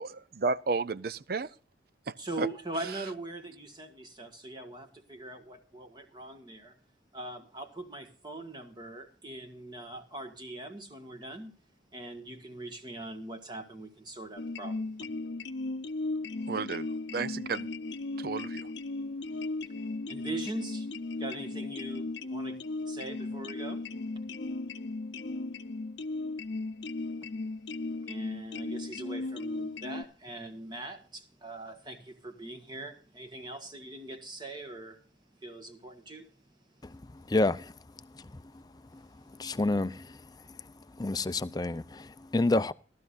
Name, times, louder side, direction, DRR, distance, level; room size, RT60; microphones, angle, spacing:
voice 1, 0.0-1.5 2.1-2.5 16.5-16.9 17.1-17.7 18.2-18.6, right 4 dB, 55° right, 0.5 m, -32 dB
voice 2, 2.2-6.8 7.1-11.5 11.9-14.9 20.1-20.9 21.2-22.6 22.9-23.9 28.1-35.0 35.4-36.4 38.9-39.0, right 2 dB, 25° right, 1.5 m, -41 dB
sound 1, 14.4-30.0, left 2 dB, 85° left, 0.7 m, -36 dB
voice 3, 39.4-39.9 41.0-41.8 42.3-42.7, left 2 dB, 20° left, 0.5 m, -26 dB
17.5 x 12.5 x 2.5 m
head